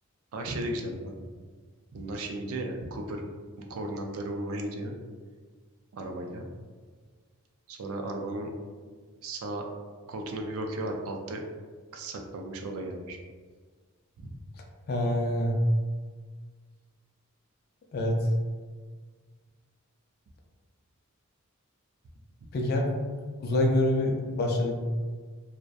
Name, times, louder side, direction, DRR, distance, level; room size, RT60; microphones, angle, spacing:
voice 1, 0.3-1.2 1.9-3.2 3.6-4.9 5.9-6.5 7.7-8.5 9.2-9.6 10.1-11.4 11.9-13.2 14.2-14.4, right 1 dB, 70° right, 3 dB, 0.4 m, -35 dB
voice 2, 14.9-15.6 17.9-18.2 22.5-22.9 23.4-24.8, left 1 dB, 45° left, 1 dB, 0.3 m, -26 dB
2.6 x 2.1 x 2.3 m, 1.5 s
head